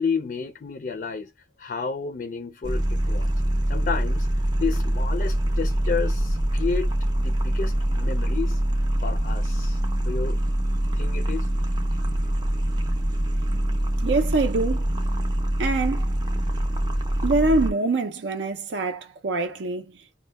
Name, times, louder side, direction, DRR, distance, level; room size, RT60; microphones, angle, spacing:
voice 1, 0.0-1.3 1.6-3.3 3.7-6.9 7.2-8.6 9.0-10.4 10.9-11.5, left 5 dB, 50° left, 0.4 m, -31 dB
sound 1, 2.6-17.7, right 1 dB, 25° right, 0.4 m, -24 dB
voice 2, 14.0-14.9 15.6-16.1 17.2-19.9, right 3 dB, 80° right, 0.5 m, -24 dB
2.1 x 2.1 x 3.2 m
head